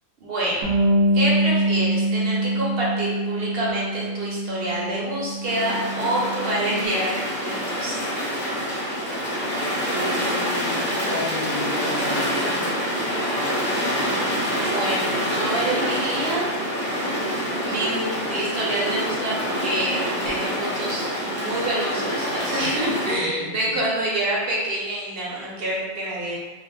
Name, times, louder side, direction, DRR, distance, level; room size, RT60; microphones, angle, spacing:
voice 1, 0.2-0.7 1.1-8.0 14.5-16.5 17.6-26.4, right 1 dB, 55° right, -5 dB, 0.8 m, -27 dB
Bass guitar, 0.6-6.9, right 1 dB, 90° right, 1.0 m, -24 dB
sound 1, 5.4-23.1, equal, 15° left, 0.5 m, -26 dB
voice 2, 9.8-13.0 22.8-23.5, left 2 dB, 65° left, -4 dB, 0.8 m, -34 dB
2.3 x 2.1 x 3.2 m, 1.2 s
omnidirectional pair, 1.3 m